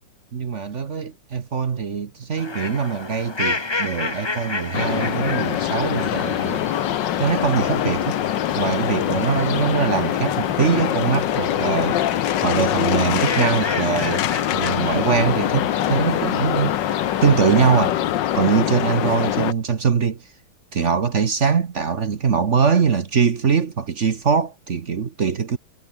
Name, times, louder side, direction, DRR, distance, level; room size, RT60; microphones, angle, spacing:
voice 1, 0.3-6.6 7.2-8.2 8.6-12.0 12.4-14.3 14.5-16.7 17.2-18.0 18.3-20.2 20.7-25.6, right 6 dB, 40° right, 1.2 m, -22 dB
sound 1, 2.4-17.9, left 3 dB, 30° left, 0.4 m, -32 dB
sound 2, 4.7-19.5, left 12 dB, 65° left, 1.4 m, -23 dB
omnidirectional pair, 2.4 m